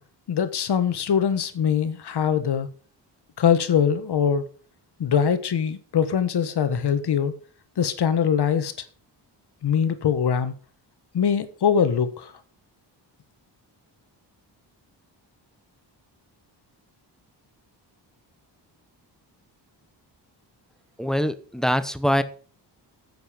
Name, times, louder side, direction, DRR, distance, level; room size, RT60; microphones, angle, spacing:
voice 1, 0.3-2.7 3.4-4.4 5.0-7.3 7.8-8.7 9.6-10.5 11.1-12.3, left 7 dB, 65° left, 1.4 m, -22 dB
voice 2, 21.0-22.2, equal, ahead, 0.8 m, -23 dB
9.9 x 8.1 x 5.1 m
wide cardioid pair, 150°, 43 cm